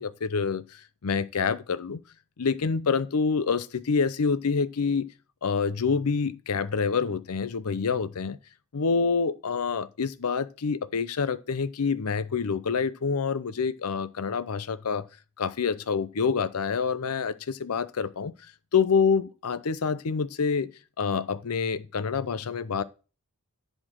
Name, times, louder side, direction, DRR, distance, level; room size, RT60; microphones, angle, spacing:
voice 1, 0.0-2.0 2.4-5.1 5.4-8.4 8.7-15.1 15.4-18.3 18.7-20.7 21.0-22.8, left 5 dB, 85° left, 0.6 m, -27 dB
10.5 x 4.3 x 6.2 m
head